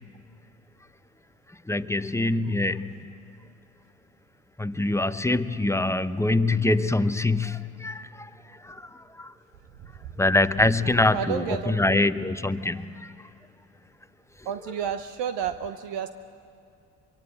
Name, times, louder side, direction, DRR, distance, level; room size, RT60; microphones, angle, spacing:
voice 1, 1.7-2.9 4.6-8.3 8.6-8.9 9.2-9.3 10.2-13.1, left 2 dB, 5° left, 12 dB, 0.8 m, -24 dB
voice 2, 11.1-12.0 14.4-16.1, right 8 dB, 65° right, 10 dB, 0.9 m, -31 dB
23.5 x 23.0 x 8.9 m, 2.5 s
hypercardioid pair, 50°, 46 cm